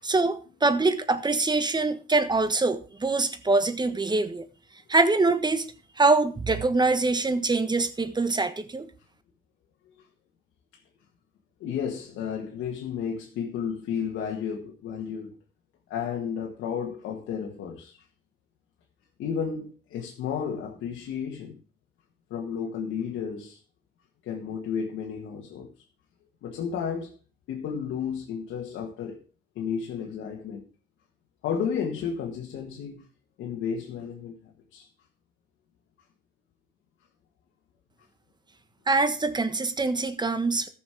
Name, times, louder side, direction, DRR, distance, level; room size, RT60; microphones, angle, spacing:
voice 1, 0.0-4.5 4.9-8.9 38.9-40.7, right 3 dB, 20° right, 1.3 m, -24 dB
voice 2, 11.6-15.3 15.9-18.0 19.2-21.6 22.3-23.6 24.2-25.7 26.4-27.1 27.5-29.2 29.5-30.7 31.4-33.0 33.4-34.4 34.7-34.9, left 7 dB, 85° left, 1.6 m, -32 dB
14.0 x 6.2 x 4.9 m
cardioid pair, 90°, 20 cm